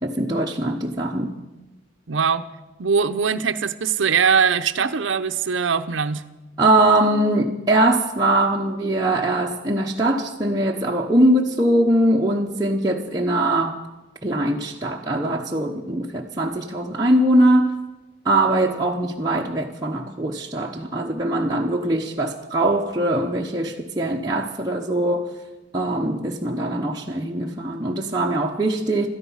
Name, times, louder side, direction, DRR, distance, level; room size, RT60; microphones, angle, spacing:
voice 1, 0.0-1.4 6.6-13.8 14.2-17.7 18.2-25.3 25.7-29.1, right 1 dB, 20° right, 0.8 m, -21 dB
voice 2, 2.1-2.5 2.8-6.2, right 6 dB, 80° right, 0.7 m, -21 dB
16.5 x 13.0 x 5.6 m
head